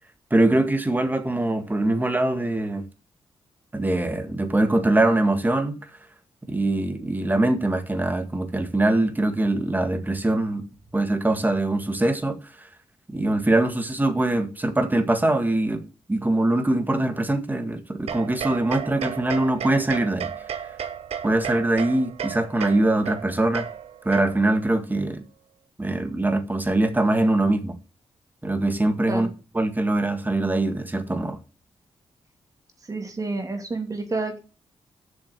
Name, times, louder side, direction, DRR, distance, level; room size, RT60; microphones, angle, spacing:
voice 1, 0.3-2.8 3.7-5.8 6.5-10.7 10.9-12.7 13.1-20.3 21.2-23.7 24.1-25.2 25.8-27.8 28.4-29.3 29.5-31.4, right 2 dB, 20° right, 1.8 m, -23 dB
sound 1, 18.1-24.6, right 8 dB, 80° right, 1.0 m, -34 dB
voice 2, 32.9-34.4, right 3 dB, 35° right, 2.8 m, -29 dB
7.8 x 6.3 x 7.5 m
cardioid pair, 85°, 10 cm